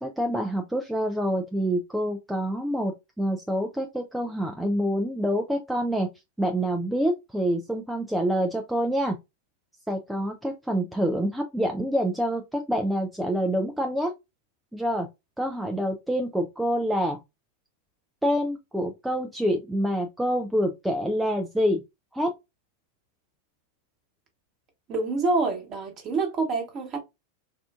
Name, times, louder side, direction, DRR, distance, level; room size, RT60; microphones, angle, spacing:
voice 1, 0.0-6.1 6.4-9.2 9.9-14.1 14.7-15.1 15.4-17.2 18.2-21.8 22.1-22.3, equal, 5° right, 0.4 m, -26 dB
voice 2, 24.9-27.0, right 3 dB, 30° right, 1.2 m, -26 dB
3.6 x 2.4 x 2.4 m
figure-of-eight pair, 90°, 0 cm